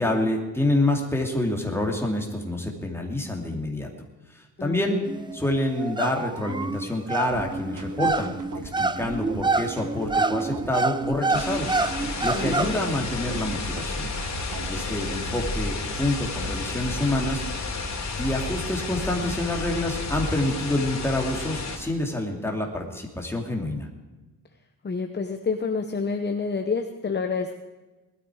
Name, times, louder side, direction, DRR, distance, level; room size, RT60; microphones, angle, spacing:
voice 1, 0.0-3.9 4.3-5.0 5.3-11.7 12.2-14.1 14.6-17.4 18.2-23.9, left 1 dB, 5° left, 0 dB, 2.6 m, -27 dB
voice 2, 4.6-5.0 12.3-12.8 24.8-27.5, left 4 dB, 30° left, 6 dB, 1.0 m, -28 dB
sound 1, 5.0-12.8, right 3 dB, 15° right, 0.4 m, -27 dB
sound 2, 7.3-15.3, right 5 dB, 55° right, 1.8 m, -40 dB
sound 3, 11.3-21.8, left 3 dB, 45° left, 3.4 m, -31 dB
19.5 x 13.0 x 4.9 m, 1.2 s
wide cardioid pair, 135°, 37 cm